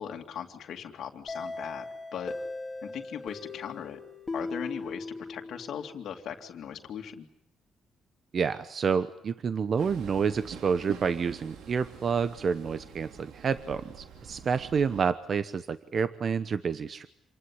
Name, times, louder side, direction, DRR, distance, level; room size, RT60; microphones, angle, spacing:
voice 1, 0.0-2.3 2.8-4.0 4.3-7.3, left 8 dB, 70° left, 3 dB, 2.3 m, -39 dB
sound 1, 1.3-6.0, left 3 dB, 20° left, 2.6 m, -39 dB
voice 2, 8.3-17.1, right 6 dB, 50° right, 12 dB, 1.0 m, -29 dB
Train, 9.8-15.0, right 8 dB, 80° right, 2.5 m, -46 dB
27.0 x 20.0 x 9.9 m, 0.79 s
cardioid pair, 90°, 0 cm